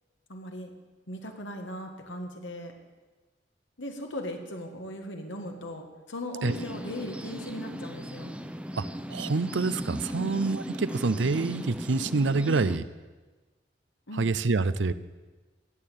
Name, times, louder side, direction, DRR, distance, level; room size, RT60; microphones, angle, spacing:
voice 1, 0.3-0.7 1.1-2.7 3.8-8.4 10.2-10.4 14.1-14.3, left 1 dB, 80° left, 4 dB, 2.0 m, -38 dB
sound 1, 6.4-12.8, equal, 5° right, 0.7 m, -37 dB
voice 2, 8.8-12.8 14.2-14.9, right 3 dB, 75° right, 14 dB, 0.6 m, -27 dB
17.0 x 6.7 x 9.1 m, 1.3 s
head